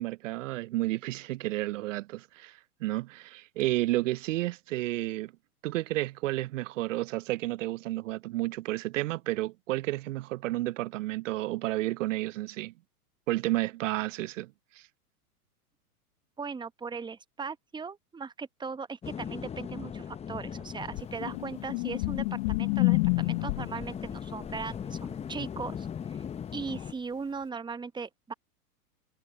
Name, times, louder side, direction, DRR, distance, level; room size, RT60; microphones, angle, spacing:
voice 1, 0.0-5.3 5.6-12.7 13.3-14.5 14.8-14.9, right 17 dB, 55° right, 0.6 m, -31 dB
voice 2, 16.4-25.9 26.5-28.3, right 5 dB, 10° right, 1.1 m, -38 dB
sound 1, 19.0-26.9, left 8 dB, 15° left, 0.8 m, -40 dB
sound 2, 20.9-23.9 26.7-26.8, left 27 dB, 40° left, 0.6 m, -28 dB
hypercardioid pair, 105°, 45 cm